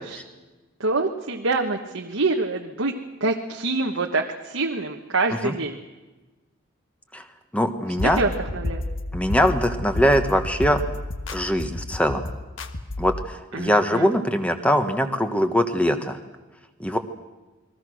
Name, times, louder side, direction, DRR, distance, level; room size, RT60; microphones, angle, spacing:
voice 1, 0.8-2.9 3.2-5.8 8.2-8.8 13.5-14.1, right 3 dB, 75° right, 2 dB, 1.4 m, -25 dB
voice 2, 7.5-8.2 9.1-10.8 11.3-12.2 13.0-16.2 16.8-17.0, equal, 5° left, 7 dB, 1.4 m, -22 dB
sound 1, 8.0-13.2, left 1 dB, 65° left, 1.5 m, -31 dB
29.0 x 21.5 x 6.4 m, 1.2 s
head